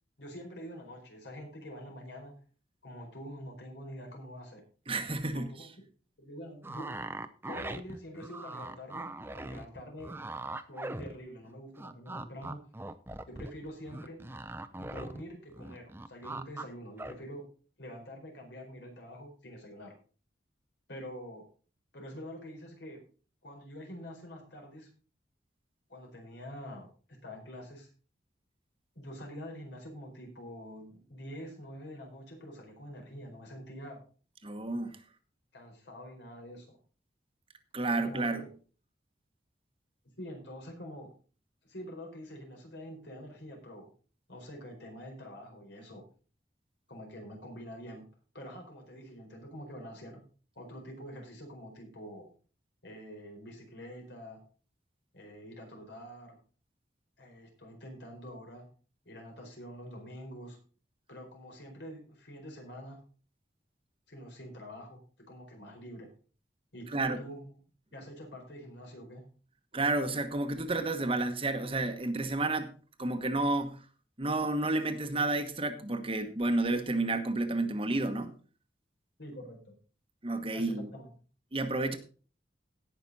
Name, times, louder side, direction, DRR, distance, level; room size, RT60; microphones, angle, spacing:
voice 1, 0.2-2.3 2.8-4.6 5.3-5.7 6.2-6.9 7.5-10.1 10.7-12.6 13.3-14.2 14.8-17.4 17.8-19.9 20.9-21.4 21.9-23.0 23.4-24.9 25.9-27.9 28.9-34.0 35.5-36.8 37.9-38.5 40.2-41.1 41.7-43.9 44.3-46.0 46.9-48.1 48.3-50.2 50.5-52.3 52.8-54.4 55.1-56.4 57.2-58.7 59.0-60.6 61.1-63.0 64.1-66.1 66.7-67.5 67.9-69.2 79.2-79.7 80.5-81.1, equal, 75° left, 4.5 m, -46 dB
voice 2, 4.9-5.5 34.4-35.0 37.7-38.4 66.9-67.2 69.7-72.7 73.0-73.8 74.2-78.3 80.2-80.9 81.5-82.0, right 2 dB, 30° right, 1.2 m, -30 dB
sound 1, 6.6-11.5 11.8-15.2 15.5-16.6 17.0-17.1, right 2 dB, 15° right, 0.6 m, -41 dB
17.5 x 6.0 x 4.1 m
head